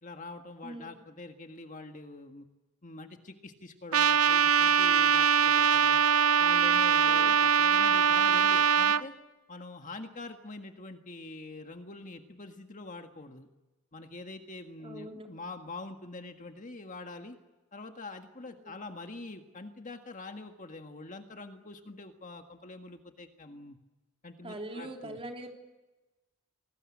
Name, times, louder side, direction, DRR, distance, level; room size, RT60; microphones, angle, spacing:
voice 1, 0.0-2.5 2.8-6.0 6.4-9.1 9.5-13.5 13.9-17.4 17.7-23.8 24.2-25.2, left 2 dB, 35° left, 6 dB, 1.7 m, -45 dB
Trumpet, 3.9-9.0, right 7 dB, 85° right, 0.9 m, -23 dB
voice 2, 7.1-7.6 14.8-15.3 18.5-18.7 24.4-25.5, right 1 dB, 25° right, 2 dB, 3.4 m, -43 dB
27.0 x 19.5 x 8.6 m, 1.1 s
head